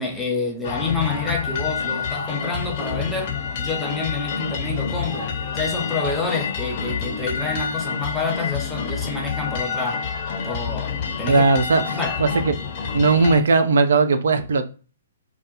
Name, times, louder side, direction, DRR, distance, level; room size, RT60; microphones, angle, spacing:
voice 1, 0.0-10.1 10.4-11.4 11.9-12.2, left 4 dB, 5° left, 0.7 m, -28 dB
sound 1, 0.6-13.4, left 6 dB, 45° left, 0.6 m, -28 dB
voice 2, 11.3-12.6 12.9-14.7, right 3 dB, 65° right, 0.4 m, -18 dB
2.6 x 2.2 x 2.4 m
figure-of-eight pair, 125°, 0 cm